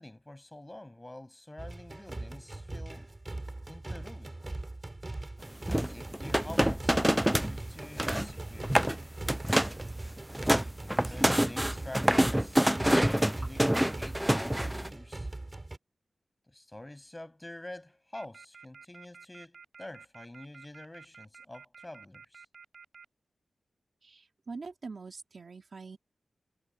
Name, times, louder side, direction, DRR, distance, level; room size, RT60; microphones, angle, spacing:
voice 1, 0.0-3.2 3.7-4.4 5.7-8.7 10.8-13.7 14.0-15.3 16.5-22.4, left 1 dB, 15° left, 7.7 m, -47 dB
sound 1, 1.6-15.8, right 2 dB, 20° right, 6.0 m, -40 dB
sound 2, 5.7-7.5 7.8-8.3 8.6-9.0 9.3-9.8 10.2-14.9, equal, 5° right, 0.3 m, -26 dB
sound 3, 18.1-23.0, right 5 dB, 70° right, 6.3 m, -51 dB
voice 2, 24.0-26.0, right 4 dB, 50° right, 2.8 m, -44 dB
wide cardioid pair, 135°, 0 cm